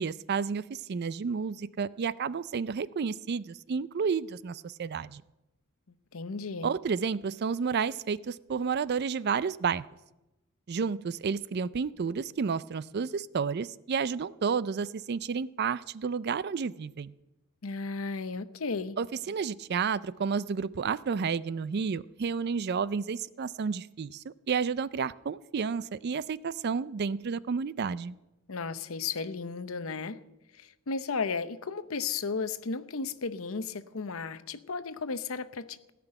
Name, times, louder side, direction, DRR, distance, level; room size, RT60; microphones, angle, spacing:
voice 1, 0.0-5.2 6.6-9.9 10.7-17.1 19.0-28.2, right 5 dB, 50° right, 18 dB, 0.4 m, -31 dB
voice 2, 6.1-6.7 17.6-19.0 28.5-30.2 30.6-35.9, left 4 dB, 75° left, 13 dB, 0.8 m, -34 dB
17.0 x 6.0 x 9.9 m, 0.98 s
head